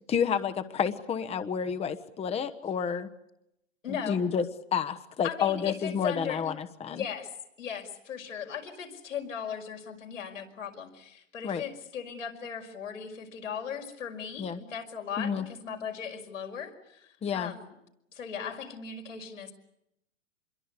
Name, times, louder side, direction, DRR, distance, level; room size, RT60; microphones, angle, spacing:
voice 1, 0.1-3.1 3.9-4.4 4.7-7.0 11.4-11.6 14.4-14.6 15.2-15.4 17.2-17.5, left 7 dB, 15° left, 10 dB, 1.1 m, -30 dB
voice 2, 3.8-4.2 5.2-6.4 6.9-7.3 7.6-17.7 18.1-19.5, left 7 dB, 85° left, 2 dB, 5.5 m, -37 dB
27.0 x 22.0 x 8.3 m, 0.82 s
hypercardioid pair, 110°, 37 cm